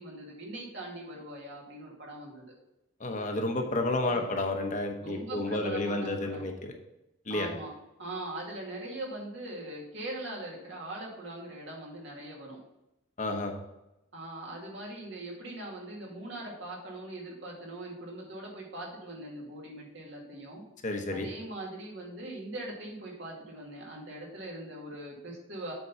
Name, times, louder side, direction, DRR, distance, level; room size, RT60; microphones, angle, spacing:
voice 1, 0.0-2.5 4.0-4.2 5.0-6.5 7.3-7.7 8.0-12.6 14.1-20.6 21.1-25.7, right 1 dB, 65° right, -2 dB, 2.2 m, -41 dB
voice 2, 3.0-6.7 7.3-7.5 13.2-13.5 20.8-21.3, left 2 dB, 40° left, 4 dB, 0.9 m, -31 dB
8.0 x 4.6 x 5.7 m, 0.91 s
head